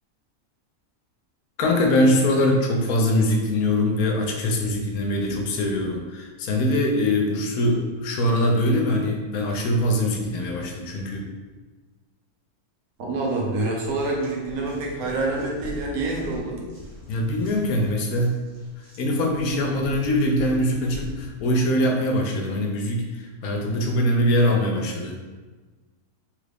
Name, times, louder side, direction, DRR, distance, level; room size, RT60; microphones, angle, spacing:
voice 1, 1.6-11.3 17.1-18.5 19.0-25.2, left 1 dB, 80° left, 2 dB, 1.1 m, -22 dB
voice 2, 13.0-16.6, right 2 dB, 75° right, -1 dB, 1.2 m, -27 dB
sound 1, 13.1-13.3 13.7-21.3, left 1 dB, 30° right, 0.8 m, -42 dB
3.3 x 2.4 x 3.3 m, 1.3 s
omnidirectional pair, 1.6 m